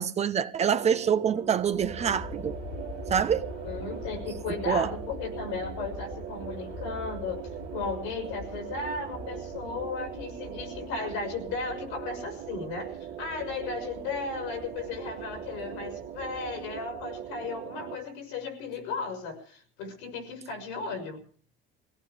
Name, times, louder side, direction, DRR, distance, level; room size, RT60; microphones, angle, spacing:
voice 1, 0.0-2.6 3.1-3.5 4.7-4.9, right 7 dB, 30° right, 0.8 m, -26 dB
sound 1, 0.6-18.0, right 10 dB, 65° right, 1.6 m, -40 dB
Aircraft, 1.6-17.6, left 4 dB, 50° left, 2.6 m, -44 dB
voice 2, 3.6-21.2, left 4 dB, 85° left, 5.9 m, -35 dB
22.5 x 17.5 x 3.4 m
cardioid pair, 125°, 21 cm